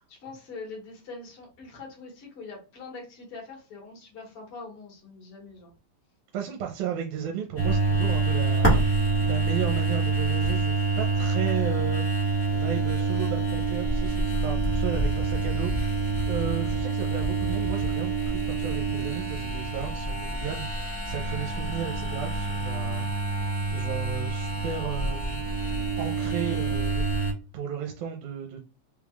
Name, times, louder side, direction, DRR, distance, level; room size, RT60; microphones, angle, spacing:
voice 1, 0.1-5.7, left 3 dB, 55° left, 2.0 m, -43 dB
voice 2, 6.3-12.0 12.5-23.1 23.7-25.4 26.0-27.0 27.5-28.6, right 8 dB, 85° right, 2.1 m, -34 dB
sound 1, 7.6-27.3, right 3 dB, 10° left, 0.8 m, -26 dB
4.8 x 3.5 x 2.3 m
omnidirectional pair, 3.5 m